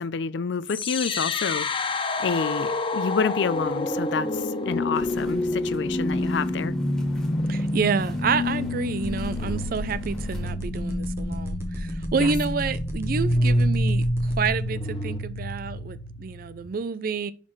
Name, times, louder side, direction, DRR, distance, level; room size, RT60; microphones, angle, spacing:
voice 1, 0.0-6.7 12.2-12.3, left 5 dB, 70° left, 0.4 m, -29 dB
sound 1, 0.7-16.7, left 1 dB, 30° left, 0.7 m, -27 dB
sound 2, 4.9-10.5, equal, 5° left, 2.0 m, -44 dB
voice 2, 7.5-17.3, right 5 dB, 50° right, 0.4 m, -29 dB
sound 3, 9.0-14.6, equal, 15° right, 1.2 m, -36 dB
10.5 x 4.2 x 3.1 m
head